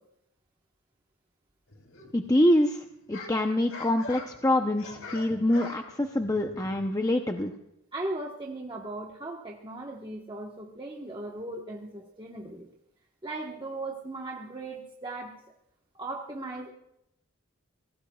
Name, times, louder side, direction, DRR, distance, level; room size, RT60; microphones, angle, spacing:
sound 1, 1.7-2.4 2.8-7.1, left 3 dB, 75° left, 3.0 m, -44 dB
voice 1, 2.1-7.5, left 1 dB, 15° left, 4 dB, 0.7 m, -25 dB
voice 2, 7.9-12.7 13.2-15.4 15.9-16.7, right 2 dB, 20° right, -1 dB, 1.2 m, -37 dB
25.0 x 18.0 x 2.4 m, 0.83 s
head